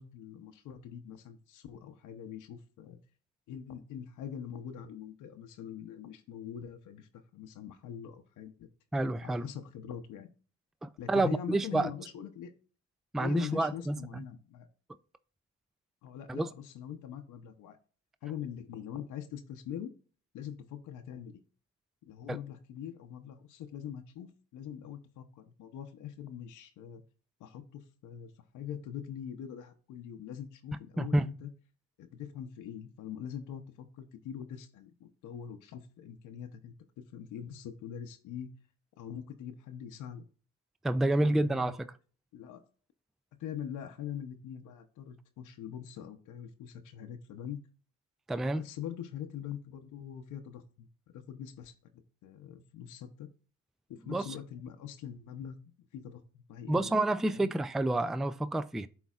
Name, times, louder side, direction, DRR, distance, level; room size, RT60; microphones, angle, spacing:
voice 1, 0.0-3.0 3.5-8.7 9.2-10.3 11.0-12.5 13.2-14.7 16.0-17.8 18.2-19.9 20.3-21.4 22.1-27.0 27.4-31.5 32.0-36.7 37.1-38.5 39.0-40.3 41.0-41.8 42.3-42.6 43.4-47.6 48.5-50.9 51.1-51.7 52.2-53.3 53.9-56.9 57.3-57.5, left 9 dB, 85° left, 0.8 m, -43 dB
voice 2, 8.9-9.5 10.8-11.9 13.1-14.2 16.3-16.5 22.3-22.4 31.0-31.2 40.8-42.0 48.3-48.6 54.1-54.3 56.7-58.9, right 2 dB, ahead, 0.3 m, -29 dB
11.5 x 4.1 x 2.4 m
cardioid pair, 90°, 30 cm